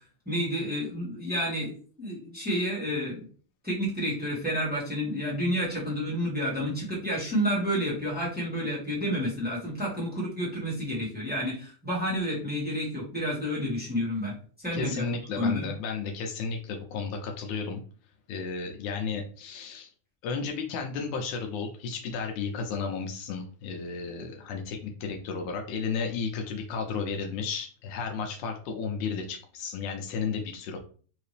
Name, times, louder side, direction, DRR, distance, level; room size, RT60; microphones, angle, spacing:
voice 1, 0.2-3.3 3.6-15.0 15.3-15.7, equal, 5° right, -6 dB, 0.7 m, -30 dB
voice 2, 14.7-17.8 18.3-19.9 20.2-30.8, left 5 dB, 80° left, 3 dB, 2.0 m, -33 dB
5.0 x 2.8 x 3.3 m, 0.42 s
omnidirectional pair, 3.5 m